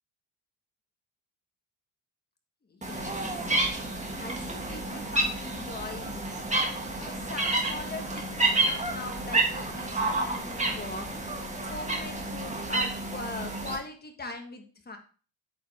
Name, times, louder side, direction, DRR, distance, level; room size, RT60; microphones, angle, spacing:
voice 1, 2.7-3.2 3.5-3.6 4.2-6.3 6.9-11.1 11.7-15.0, left 3 dB, 20° left, 5 dB, 1.3 m, -41 dB
sound 1, 2.8-13.8, right 2 dB, 15° right, 1.6 m, -30 dB
8.6 x 5.1 x 3.4 m, 0.39 s
cardioid pair, 135°, 48 cm